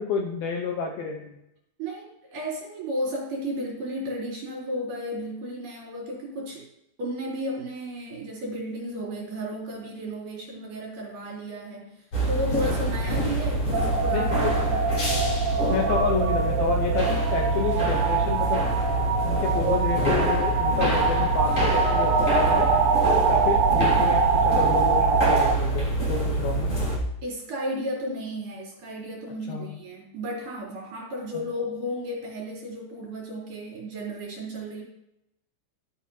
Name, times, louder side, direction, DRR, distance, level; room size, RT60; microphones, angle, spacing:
voice 1, 0.0-1.3 14.1-14.5 15.7-18.6 19.2-22.7 23.3-26.7 29.5-29.7 31.3-31.4, left 5 dB, 85° left, 1 dB, 2.1 m, -29 dB
voice 2, 1.8-6.7 7.0-11.9 12.3-14.9 27.2-34.8, equal, 45° right, -4 dB, 4.9 m, -33 dB
sound 1, 12.1-27.0, right 1 dB, 35° left, 3.6 m, -26 dB
sound 2, 13.7-25.6, right 5 dB, 85° right, 3.4 m, -24 dB
14.5 x 8.2 x 2.8 m, 0.83 s
omnidirectional pair, 5.7 m